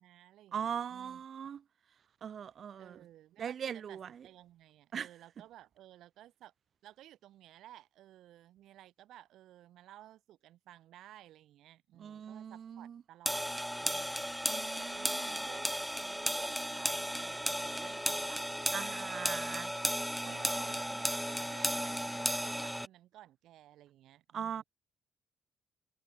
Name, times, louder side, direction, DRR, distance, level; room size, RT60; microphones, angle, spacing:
voice 1, 0.0-1.2 2.8-6.5 6.8-14.3 14.7-19.4 20.2-24.6, right 13 dB, 80° right, 7.9 m, -56 dB
voice 2, 0.5-1.6 2.2-3.0 3.4-4.3 4.9-5.1 12.0-13.0 14.5-15.4 18.7-19.7 20.3-20.8 24.3-24.6, right 8 dB, 55° right, 0.8 m, -41 dB
sound 1, 13.3-22.9, equal, ahead, 1.1 m, -35 dB
cardioid pair, 90°, 0 cm